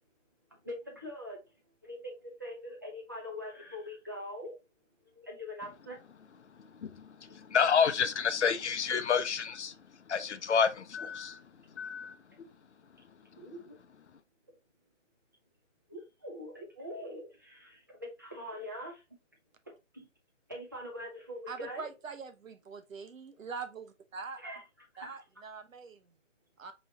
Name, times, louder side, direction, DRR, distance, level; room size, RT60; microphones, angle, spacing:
voice 1, 0.6-1.4 1.8-4.5 5.0-6.0 7.3-7.4 13.4-13.8 15.9-19.0 19.7-20.1 20.5-21.9 24.4-24.6 25.0-25.2, left 1 dB, 15° right, 0.5 m, -43 dB
voice 2, 6.6-9.8 10.1-11.5 11.7-12.5, left 6 dB, 60° left, 0.6 m, -30 dB
voice 3, 21.5-24.5 25.0-26.0 26.6-26.7, right 5 dB, 85° right, 0.9 m, -43 dB
4.7 x 3.0 x 2.7 m
hypercardioid pair, 160°, 39 cm